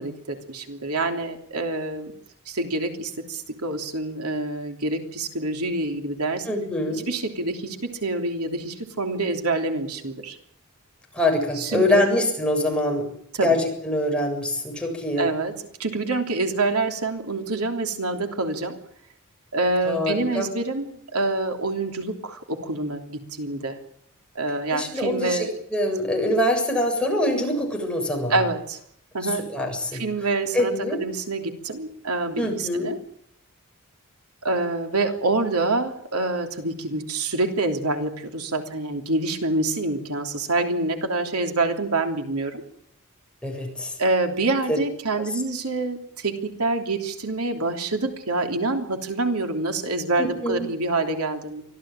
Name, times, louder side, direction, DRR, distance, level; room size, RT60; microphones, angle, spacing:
voice 1, 0.0-2.1 2.4-6.5 6.9-10.4 11.5-12.0 13.3-13.6 15.2-15.5 15.8-18.8 19.5-23.8 24.3-25.5 28.3-28.8 29.1-29.4 29.9-33.0 34.4-42.6 44.0-51.6, right 2 dB, 90° right, 5 dB, 3.2 m, -26 dB
voice 2, 6.5-7.1 11.1-13.1 13.4-15.3 19.9-20.5 24.7-28.4 29.2-30.0 30.5-31.0 32.4-32.9 43.4-43.9 44.7-44.8 45.1-45.2 50.2-50.7, left 1 dB, 5° left, 1 dB, 7.5 m, -24 dB
25.0 x 16.0 x 8.9 m, 0.69 s
head